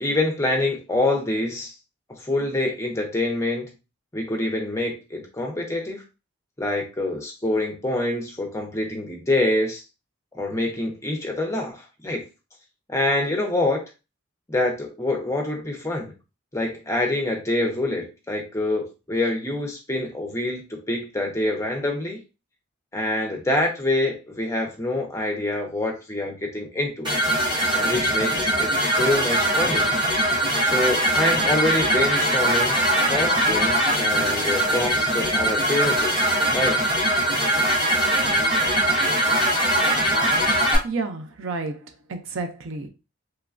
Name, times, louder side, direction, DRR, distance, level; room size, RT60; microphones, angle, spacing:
voice 1, 0.0-1.7 2.1-3.7 4.1-6.0 6.6-9.8 10.3-12.2 12.9-13.8 14.5-16.1 16.5-22.2 22.9-27.1 27.7-29.9 30.6-32.8 33.1-36.2 36.5-36.8, left 1 dB, 15° left, 0.5 m, -26 dB
sound 1, 27.0-40.8, right 1 dB, 20° right, 0.8 m, -21 dB
voice 2, 40.8-42.9, right 3 dB, 75° right, 0.4 m, -31 dB
3.1 x 2.2 x 2.4 m
head